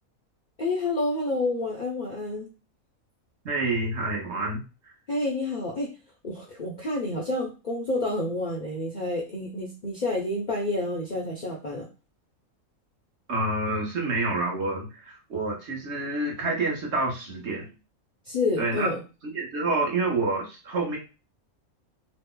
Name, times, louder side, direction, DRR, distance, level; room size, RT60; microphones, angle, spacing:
voice 1, 0.6-2.5 5.1-5.9 6.2-11.8 18.3-19.0, left 2 dB, 50° left, -2 dB, 0.6 m, -29 dB
voice 2, 3.4-4.9 13.3-17.7 18.6-18.9 19.2-21.0, right 2 dB, 55° right, -1 dB, 1.1 m, -28 dB
2.9 x 2.0 x 3.6 m, 0.30 s
omnidirectional pair, 1.5 m